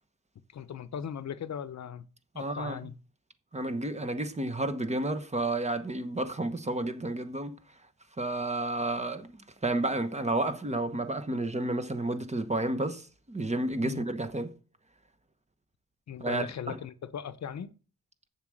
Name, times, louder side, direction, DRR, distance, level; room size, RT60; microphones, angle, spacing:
voice 1, 0.5-2.0 2.3-2.9 13.8-14.0 16.1-17.7, left 8 dB, 60° left, 0.7 m, -38 dB
voice 2, 2.3-2.8 3.5-7.5 8.2-14.5 16.2-16.8, right 2 dB, 20° right, 1.0 m, -31 dB
7.5 x 7.1 x 6.3 m
cardioid pair, 95°, 31 cm